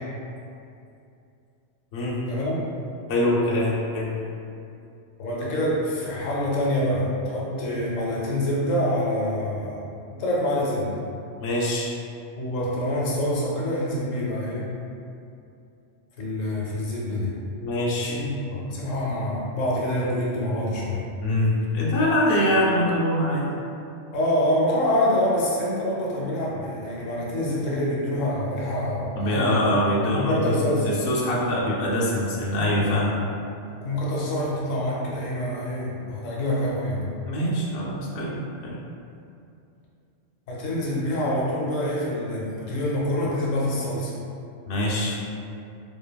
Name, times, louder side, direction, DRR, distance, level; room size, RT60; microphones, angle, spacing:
voice 1, 3.1-4.1 11.4-11.9 17.6-18.2 21.2-23.5 29.1-30.6 30.8-33.2 37.2-38.8 44.7-45.2, left 1 dB, 60° left, -5 dB, 0.7 m, -24 dB
voice 2, 5.2-9.8 10.1-10.9 12.4-14.7 16.2-17.4 18.0-21.1 24.1-29.6 30.1-31.0 33.6-37.1 40.5-44.1, left 1 dB, 80° left, -5 dB, 1.0 m, -26 dB
2.7 x 2.5 x 2.2 m, 2.6 s
omnidirectional pair, 1.3 m